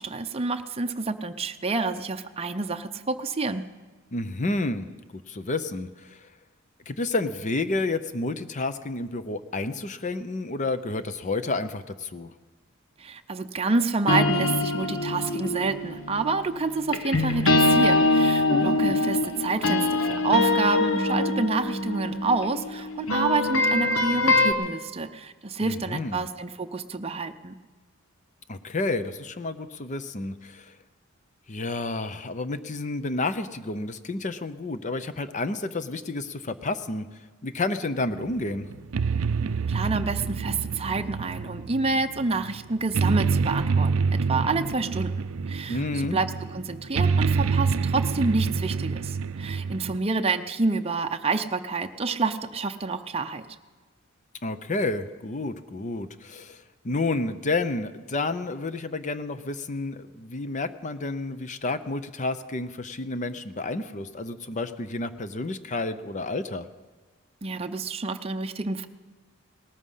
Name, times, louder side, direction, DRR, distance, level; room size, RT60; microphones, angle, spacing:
voice 1, 0.0-3.6 13.0-27.5 39.7-45.1 45.5-45.8 46.1-46.3 46.5-53.4 67.4-68.9, right 3 dB, 30° right, 6 dB, 0.6 m, -28 dB
voice 2, 4.1-4.9 5.3-6.3 6.9-12.3 25.6-26.3 28.5-30.8 31.5-37.1 37.4-38.7 45.7-46.2 54.4-66.7, left 2 dB, 35° left, 11 dB, 0.7 m, -30 dB
sound 1, 14.1-24.5, left 2 dB, 70° left, 1.2 m, -24 dB
sound 2, 38.1-50.0, right 5 dB, 70° right, 0.5 m, -27 dB
18.5 x 13.5 x 5.6 m, 1.3 s
head